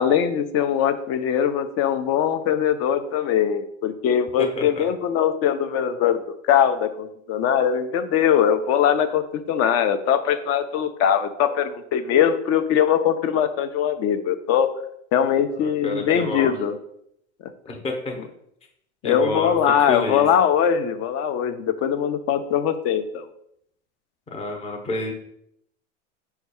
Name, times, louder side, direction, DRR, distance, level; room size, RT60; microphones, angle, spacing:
voice 1, 0.0-14.7 15.1-16.8 19.0-23.2, left 8 dB, 45° left, 10 dB, 0.5 m, -21 dB
voice 2, 4.4-4.8 15.6-16.5 17.7-18.2 19.0-19.5 19.9-20.3 24.3-25.1, left 2 dB, 15° left, 2 dB, 0.8 m, -29 dB
4.5 x 2.3 x 4.3 m, 0.74 s
hypercardioid pair, 95°, 36 cm